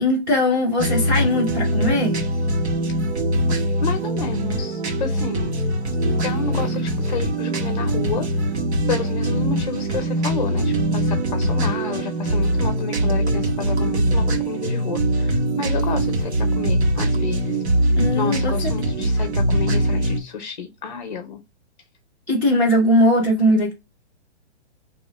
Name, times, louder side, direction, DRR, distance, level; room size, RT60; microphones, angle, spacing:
voice 1, 0.0-2.2 18.0-18.5 22.3-23.7, left 1 dB, 5° right, 0.9 m, -19 dB
sound 1, 0.8-20.2, right 1 dB, 70° right, 1.4 m, -22 dB
voice 2, 3.8-5.5 6.2-8.5 8.9-17.6 18.2-21.4, left 6 dB, 40° left, 0.6 m, -30 dB
5.4 x 2.9 x 2.2 m
hypercardioid pair, 180°, 34 cm